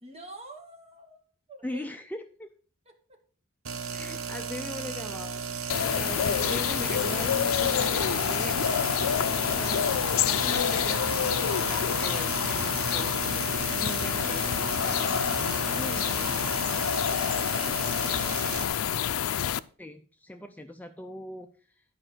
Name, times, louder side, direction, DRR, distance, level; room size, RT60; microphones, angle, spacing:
voice 1, 0.0-1.9 2.9-3.0 9.6-9.9 17.0-19.3, right 1 dB, 30° right, 2.0 m, -49 dB
voice 2, 1.6-2.5 3.9-9.1 9.6-13.3 13.7-16.3 19.8-21.8, left 1 dB, 10° left, 0.5 m, -41 dB
sound 1, 3.6-18.6, right 6 dB, 85° right, 0.9 m, -35 dB
sound 2, 5.7-19.6, left 9 dB, 80° left, 0.4 m, -27 dB
11.5 x 5.0 x 6.1 m
head